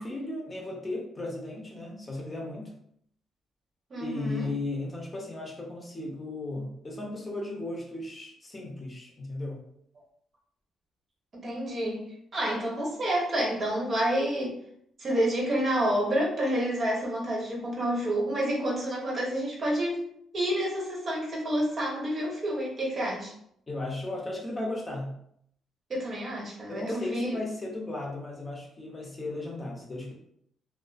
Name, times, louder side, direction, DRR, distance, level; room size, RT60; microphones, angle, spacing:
voice 1, 0.0-2.7 4.0-9.6 23.7-25.1 26.7-30.1, left 2 dB, 30° left, -1 dB, 0.7 m, -35 dB
voice 2, 3.9-4.5 11.3-12.1 12.3-14.6 15.0-20.0 20.3-23.3 25.9-27.4, right 1 dB, 45° right, -3 dB, 0.8 m, -29 dB
2.4 x 2.3 x 2.4 m, 0.70 s
cardioid pair, 90°, 0 cm